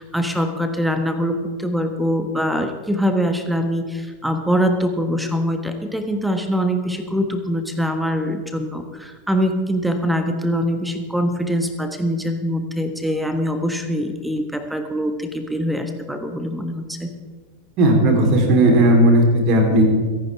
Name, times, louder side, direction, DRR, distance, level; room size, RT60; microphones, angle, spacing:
voice 1, 0.1-17.1, equal, 5° right, 7 dB, 1.3 m, -23 dB
voice 2, 17.8-19.8, right 1 dB, 40° right, 2 dB, 3.6 m, -15 dB
23.0 x 11.0 x 3.5 m, 1.5 s
figure-of-eight pair, 90°, 0 cm